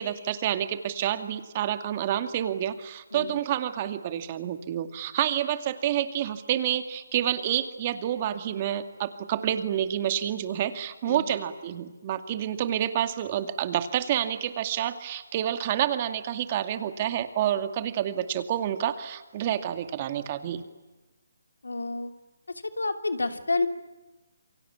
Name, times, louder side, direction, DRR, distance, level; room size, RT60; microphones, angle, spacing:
voice 1, 0.0-20.6, right 11 dB, 30° right, 9 dB, 2.3 m, -28 dB
voice 2, 11.0-11.3 21.6-22.1 22.5-23.7, left 3 dB, 85° left, 7 dB, 3.0 m, -29 dB
28.5 x 23.5 x 8.7 m, 1.1 s
hypercardioid pair, 155°, 0 cm